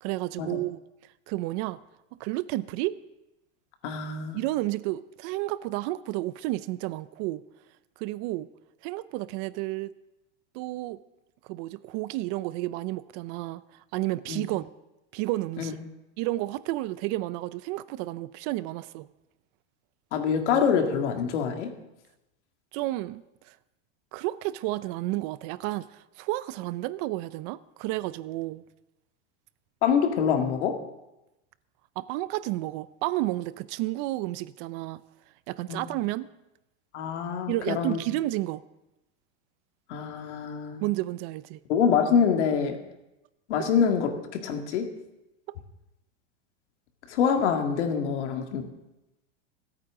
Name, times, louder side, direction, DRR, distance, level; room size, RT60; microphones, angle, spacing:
voice 1, 0.0-0.8 1.3-1.8 2.2-3.0 4.3-7.4 8.0-8.5 8.8-9.9 10.5-11.0 11.4-14.6 15.1-15.8 16.2-19.1 22.7-23.6 24.1-28.6 32.0-35.0 35.5-36.3 37.5-38.6 40.8-41.6, right 17 dB, 45° right, 17 dB, 0.5 m, -31 dB
voice 2, 3.8-4.4 14.3-14.4 15.6-15.7 20.1-21.8 29.8-30.8 35.7-35.9 36.9-38.0 39.9-40.9 41.7-42.8 43.5-44.9 47.1-48.7, left 7 dB, 80° left, 4 dB, 2.1 m, -25 dB
25.0 x 8.9 x 3.7 m, 0.94 s
supercardioid pair, 135°, 35 cm